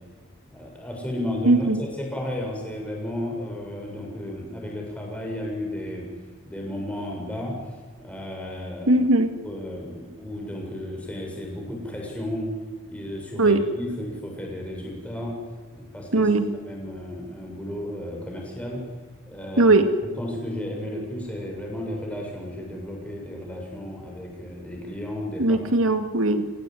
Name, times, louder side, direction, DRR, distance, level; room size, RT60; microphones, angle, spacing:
voice 1, 0.5-6.1 6.5-7.6 8.0-9.0 9.4-12.5 12.9-15.4 15.7-16.2 16.7-18.8 19.3-19.8 20.2-25.6, left 1 dB, 5° left, -1 dB, 7.4 m, -33 dB
voice 2, 1.4-1.8 8.9-9.3 13.4-13.7 16.1-16.5 19.6-19.9 25.4-26.5, right 2 dB, 75° right, 8 dB, 2.3 m, -19 dB
30.0 x 18.0 x 9.4 m, 1.4 s
head